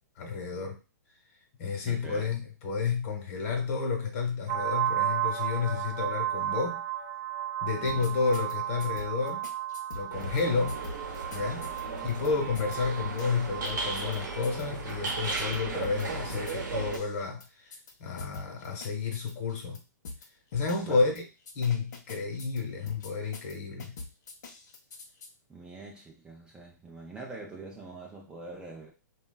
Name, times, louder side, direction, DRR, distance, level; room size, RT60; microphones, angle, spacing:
voice 1, 0.2-0.8 1.6-6.8 7.6-9.5 9.9-10.8 11.3-11.7 12.0-17.7 18.0-19.8 20.5-21.2 21.5-23.9, left 4 dB, 45° left, 2 dB, 1.0 m, -31 dB
voice 2, 1.8-2.3 7.8-8.2 11.9-12.4 20.9-21.0 25.5-28.9, right 3 dB, 10° right, -1 dB, 0.4 m, -44 dB
sound 1, 4.5-14.0, right 11 dB, 45° right, 0.8 m, -34 dB
sound 2, 7.9-8.5 8.8-10.4 10.7-12.3 12.5-12.8 13.0-13.7 14.0-14.2 14.4-16.0 16.3-17.5 17.7-17.9 18.2-19.8 20.0-20.3 20.5-21.2 21.5-22.6 22.9-23.5 23.8-25.3, left 3 dB, 70° left, 0.7 m, -43 dB
sound 3, 10.1-17.0, right 3 dB, 80° right, 0.8 m, -36 dB
3.0 x 2.3 x 2.2 m, 0.29 s
hypercardioid pair, 135°, 10 cm